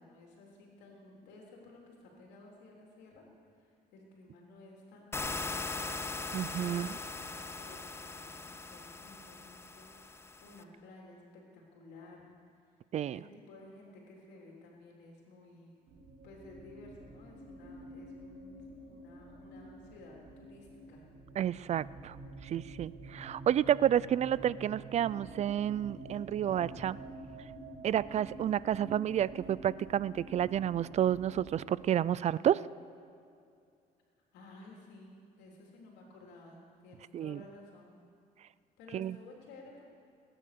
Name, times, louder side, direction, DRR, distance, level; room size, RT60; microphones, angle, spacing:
voice 1, 0.0-5.9 6.6-11.2 11.5-12.6 13.1-15.8 16.2-21.0 34.3-37.9 38.8-39.8, left 2 dB, 90° left, -1 dB, 3.5 m, -54 dB
sound 1, 5.1-10.6, left 3 dB, 15° left, 0.7 m, -40 dB
voice 2, 6.3-6.9 12.9-13.2 21.4-22.2 22.4-27.0 27.8-32.6 37.1-37.4 38.9-39.2, right 10 dB, 40° right, 20 dB, 0.4 m, -30 dB
sound 2, 15.9-31.8, right 2 dB, 65° right, 3.6 m, -49 dB
20.0 x 10.0 x 6.8 m, 2.4 s
cardioid pair, 110°, 17 cm